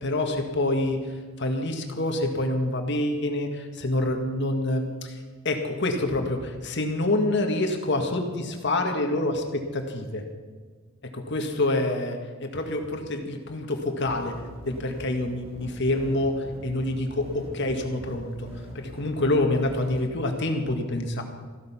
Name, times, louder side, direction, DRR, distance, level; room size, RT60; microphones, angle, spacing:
voice 1, 0.0-10.2 11.1-14.3 14.7-18.5 18.7-21.2, left 2 dB, 60° left, 4 dB, 1.9 m, -27 dB
sound 1, 14.1-20.0, right 1 dB, 30° right, 3.6 m, -42 dB
15.0 x 13.0 x 5.8 m, 1.5 s
head